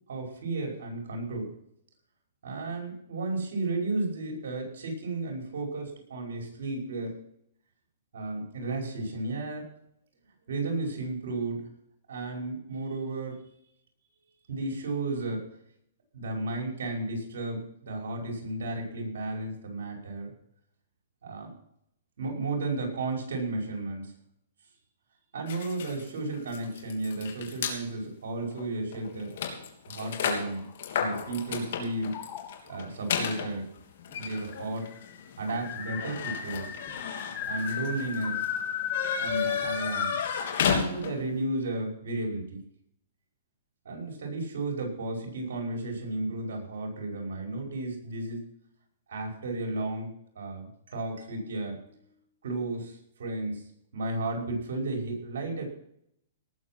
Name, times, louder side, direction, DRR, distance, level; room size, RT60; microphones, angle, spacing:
voice 1, 0.1-1.5 2.4-7.2 8.1-9.7 10.5-11.7 12.1-13.4 14.5-15.4 16.1-20.3 21.2-21.5 22.2-24.1 25.3-29.3 29.9-30.6 31.0-32.1 32.7-33.7 34.1-34.9 35.4-36.8 37.5-38.5 39.2-40.1 40.6-42.6 43.8-48.4 49.1-52.0 52.4-53.6 53.9-55.7, right 2 dB, 75° right, 2 dB, 5.4 m, -33 dB
sound 1, 25.5-27.8 28.5-28.7 28.9-41.4, left 7 dB, 60° left, 3.3 m, -34 dB
sound 2, 30.1-31.6 32.1-32.8 33.8-33.9 34.1-34.2 34.5-40.3, left 7 dB, 30° left, 2.3 m, -35 dB
18.5 x 7.4 x 6.1 m, 0.72 s
hypercardioid pair, 150°, 0 cm